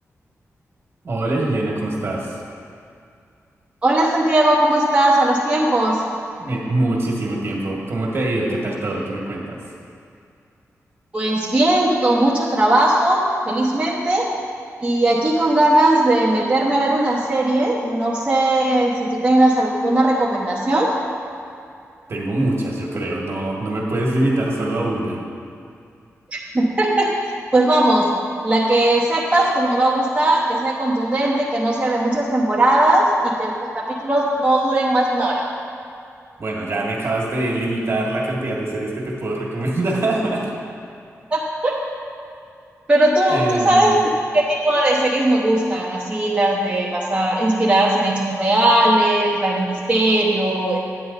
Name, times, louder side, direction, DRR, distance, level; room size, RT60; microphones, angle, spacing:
voice 1, 1.0-2.4 6.4-9.6 22.1-25.2 36.4-40.5 43.3-43.9, right 1 dB, 55° right, -2 dB, 1.7 m, -23 dB
voice 2, 3.8-6.0 11.1-14.3 14.8-20.9 26.3-28.1 28.4-35.4 41.3-41.7 42.9-44.0 44.3-50.8, right 1 dB, 25° right, -6 dB, 0.9 m, -18 dB
9.7 x 9.1 x 4.0 m, 2.4 s
wide cardioid pair, 155°, 5 cm